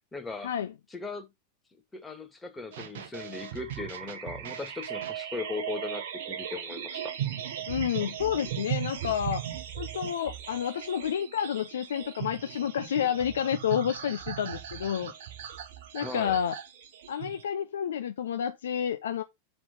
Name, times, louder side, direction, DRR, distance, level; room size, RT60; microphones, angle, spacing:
voice 1, 0.1-0.5 0.9-1.3 1.9-7.1 16.0-16.4, left 3 dB, 10° left, 1.9 m, -38 dB
sound 1, 2.7-17.4, right 10 dB, 55° right, 1.1 m, -38 dB
voice 2, 7.7-9.4 9.8-15.1 15.9-16.5 17.1-19.2, left 9 dB, 65° left, 0.6 m, -30 dB
7.4 x 4.5 x 5.2 m
figure-of-eight pair, 90°, 0 cm